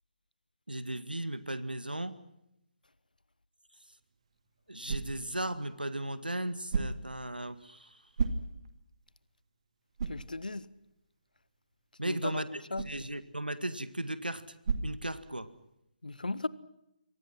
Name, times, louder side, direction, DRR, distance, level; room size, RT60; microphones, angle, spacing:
voice 1, 0.7-2.1 4.7-7.8 12.0-14.4 14.8-15.5, right 1 dB, 80° right, 2.0 m, -36 dB
sound 1, 4.0-15.7, right 4 dB, 40° right, 2.3 m, -40 dB
voice 2, 10.1-10.7 12.0-12.4 12.7-12.9 16.0-16.5, left 2 dB, 65° left, 1.4 m, -36 dB
28.0 x 24.0 x 6.0 m
figure-of-eight pair, 145°, 5 cm